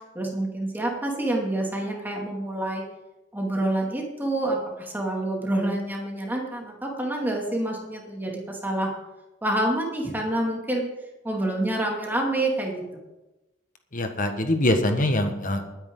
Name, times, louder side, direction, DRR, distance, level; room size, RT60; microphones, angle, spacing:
voice 1, 0.1-2.8 3.3-8.9 9.4-10.8 11.2-12.8, right 1 dB, 10° right, -1 dB, 2.6 m, -27 dB
voice 2, 13.9-15.6, left 1 dB, 45° left, 6 dB, 1.6 m, -23 dB
21.0 x 9.9 x 3.9 m, 1.0 s
head